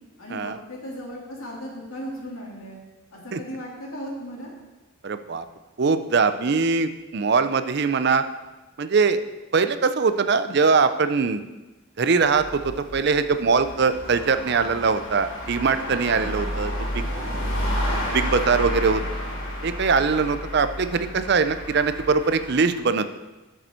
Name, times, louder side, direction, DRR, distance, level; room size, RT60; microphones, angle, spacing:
voice 1, 0.2-2.8 3.1-4.5 16.1-16.5, equal, 80° left, -3 dB, 2.8 m, -36 dB
voice 2, 5.0-5.4 5.8-8.2 8.8-9.2 9.5-11.4 12.0-17.0 18.1-19.0 19.6-23.1, right 5 dB, 50° right, 11 dB, 0.5 m, -22 dB
sound 1, 12.2-22.8, equal, 65° left, 3.3 m, -31 dB
12.5 x 6.7 x 4.4 m, 1.1 s
head